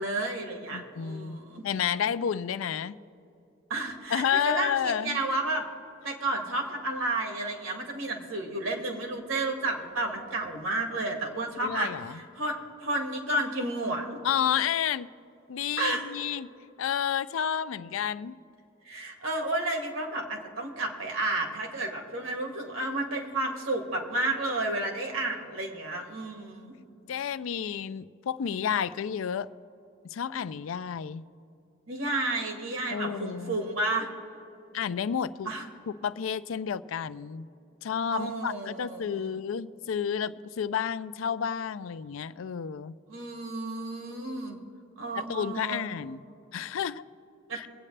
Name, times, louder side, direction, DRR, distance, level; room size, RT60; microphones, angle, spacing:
voice 1, 0.0-1.7 3.7-5.7 6.0-14.2 15.8-16.1 18.8-26.8 31.9-34.1 35.5-35.6 38.1-39.4 43.1-44.6 45.0-45.8 47.5-47.6, right 2 dB, 80° right, 2 dB, 1.9 m, -31 dB
voice 2, 0.7-1.4 1.6-2.9 4.1-5.2 11.6-12.2 14.2-15.1 15.5-16.5 16.8-18.4 27.1-29.5 30.0-31.2 32.9-33.6 34.7-35.5 36.0-37.5 37.8-42.9 45.1-46.2 46.5-47.0 47.5-47.7, left 8 dB, 80° left, 15 dB, 0.4 m, -30 dB
23.5 x 8.6 x 3.3 m, 2.7 s
head